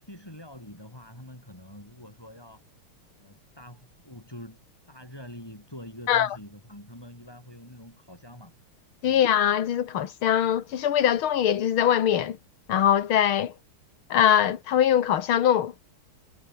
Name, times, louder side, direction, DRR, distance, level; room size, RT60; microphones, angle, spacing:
voice 1, 0.0-2.6 3.2-8.6 9.0-9.3, left 1 dB, 10° left, 7.1 m, -45 dB
voice 2, 9.0-12.4 12.7-13.5 14.1-15.7, left 10 dB, 75° left, 2.2 m, -22 dB
omnidirectional pair, 2.4 m